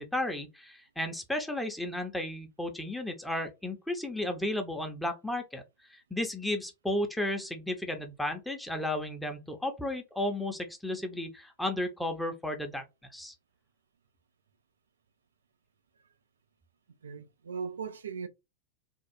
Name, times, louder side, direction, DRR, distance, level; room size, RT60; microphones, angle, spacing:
voice 1, 0.0-5.6 5.9-12.8 13.1-13.3, left 1 dB, 5° left, 0.9 m, -33 dB
voice 2, 17.0-18.3, right 6 dB, 70° right, 0.5 m, -38 dB
3.6 x 2.4 x 4.3 m
figure-of-eight pair, 90°, 0 cm